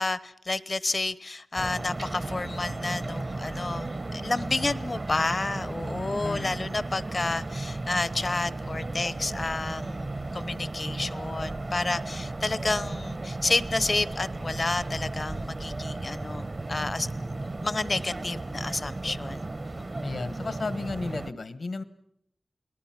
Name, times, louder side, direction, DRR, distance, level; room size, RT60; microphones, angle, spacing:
voice 1, 0.0-17.1 17.4-19.5 19.8-19.9, left 3 dB, 45° left, 17 dB, 0.9 m, -30 dB
sound 1, 1.6-21.3, right 2 dB, 45° right, 1.0 m, -35 dB
voice 2, 5.9-6.5 20.0-21.8, left 3 dB, 70° left, 13 dB, 1.3 m, -34 dB
30.0 x 19.0 x 6.0 m, 0.72 s
wide cardioid pair, 60°, 0 cm